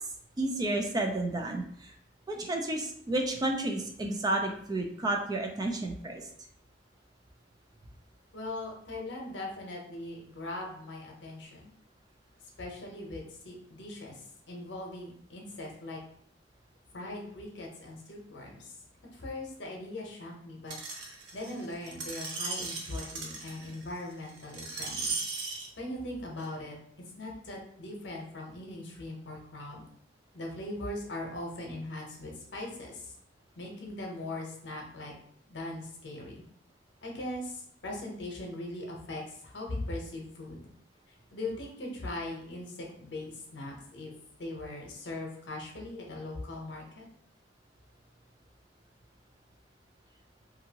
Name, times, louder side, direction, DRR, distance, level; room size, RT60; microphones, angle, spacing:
voice 1, 0.4-1.9 2.3-6.2, right 2 dB, 20° right, 3 dB, 0.3 m, -31 dB
voice 2, 8.3-11.7 12.6-16.0 16.9-18.7 19.1-20.8 21.3-25.2 25.8-26.8 27.2-29.8 30.3-33.1 33.6-35.1 35.5-36.4 37.0-40.7 41.3-44.1 44.4-47.1, left 1 dB, 75° left, 0 dB, 0.8 m, -40 dB
Screech, 20.7-25.7 26.4-26.5, right 3 dB, 90° right, 0.6 m, -37 dB
2.7 x 2.5 x 2.8 m, 0.64 s
head